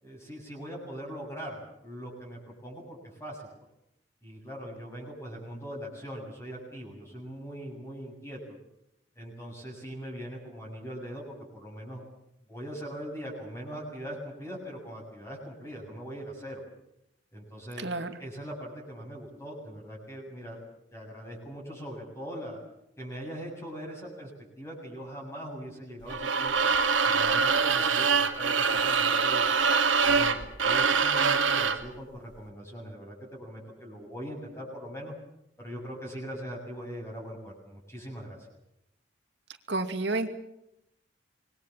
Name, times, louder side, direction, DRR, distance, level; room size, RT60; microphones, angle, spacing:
voice 1, 0.0-3.5 4.2-8.6 9.2-12.0 12.5-16.6 17.3-20.6 20.9-22.6 23.0-24.3 24.6-26.5 27.0-29.5 30.0-35.1 35.6-38.4, equal, 15° left, -3 dB, 7.7 m, -41 dB
voice 2, 17.8-18.2 39.7-40.3, right 2 dB, 65° right, 6 dB, 2.5 m, -30 dB
sound 1, 26.1-31.9, right 5 dB, 90° right, 2.5 m, -24 dB
26.5 x 21.5 x 7.5 m, 0.81 s
head